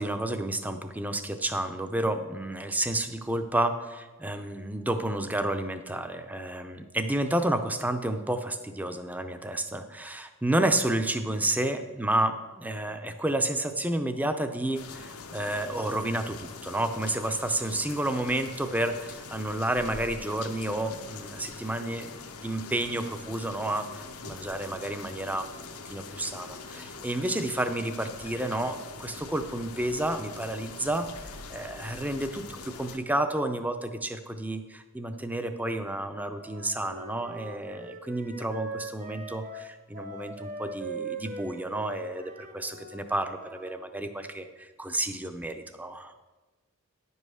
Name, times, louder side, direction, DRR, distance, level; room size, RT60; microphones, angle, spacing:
voice 1, 0.0-22.1 22.4-25.5 25.9-46.1, right 1 dB, 5° right, 8 dB, 0.5 m, -30 dB
sound 1, 14.7-33.0, left 4 dB, 90° left, 0.9 m, -43 dB
Wind instrument woodwind instrument, 36.3-43.8, right 3 dB, 40° right, 0.9 m, -41 dB
10.0 x 5.5 x 6.3 m, 1.2 s
head